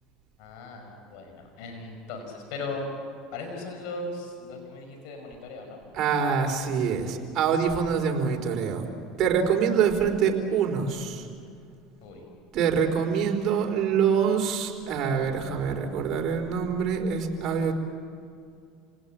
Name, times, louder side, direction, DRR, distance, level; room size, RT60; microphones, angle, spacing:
voice 1, 0.4-2.9 3.3-5.8 12.0-12.3, left 3 dB, 70° left, 3 dB, 5.6 m, -38 dB
voice 2, 5.9-8.9 9.2-11.3 12.5-17.7, right 6 dB, 50° right, 1 dB, 4.4 m, -25 dB
28.0 x 19.0 x 8.9 m, 2.3 s
hypercardioid pair, 90°, 0 cm